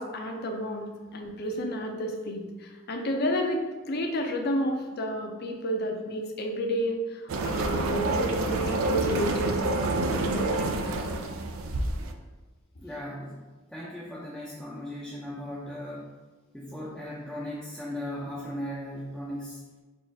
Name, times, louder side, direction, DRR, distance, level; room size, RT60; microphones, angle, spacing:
voice 1, 0.0-11.0, equal, 50° left, 3 dB, 0.6 m, -31 dB
sound 1, 7.3-12.1, right 2 dB, 80° right, 0.4 m, -28 dB
voice 2, 12.8-16.1 16.5-19.6, equal, ahead, -7 dB, 0.5 m, -37 dB
4.4 x 2.5 x 4.6 m, 1.2 s
head